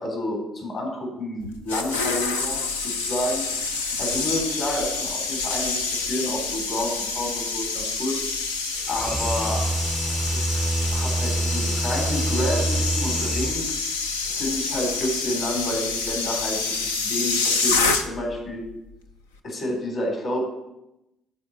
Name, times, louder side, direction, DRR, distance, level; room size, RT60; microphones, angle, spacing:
voice 1, 0.0-3.5 4.0-8.2 8.9-9.6 10.3-10.4 10.9-13.7 14.2-16.7 17.0-18.6 19.4-20.4, left 1 dB, 60° left, -1 dB, 3.8 m, -29 dB
sound 1, 1.4-18.4 18.6-18.9, left 4 dB, 90° left, 0.6 m, -27 dB
sound 2, 8.7-14.0, right 2 dB, 5° right, 0.4 m, -26 dB
11.5 x 4.3 x 7.3 m, 0.91 s
hypercardioid pair, 50°, 0 cm